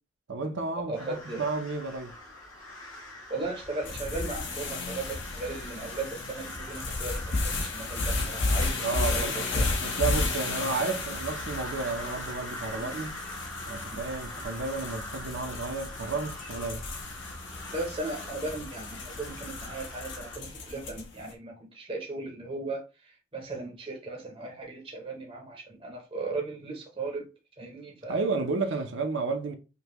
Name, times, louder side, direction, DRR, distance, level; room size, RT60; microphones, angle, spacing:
voice 1, 0.3-2.1 8.8-13.2 13.7-16.8 28.1-29.5, right 4 dB, 60° right, 0.6 m, -32 dB
voice 2, 0.9-1.5 3.3-9.7 12.8-12.9 13.9-14.0 17.7-27.2 27.6-28.4, right 3 dB, 25° right, 0.7 m, -37 dB
sound 1, 1.0-20.4, left 1 dB, 85° left, 1.2 m, -42 dB
sound 2, 3.9-21.2, left 3 dB, 60° left, 0.8 m, -33 dB
5.2 x 2.2 x 2.9 m
head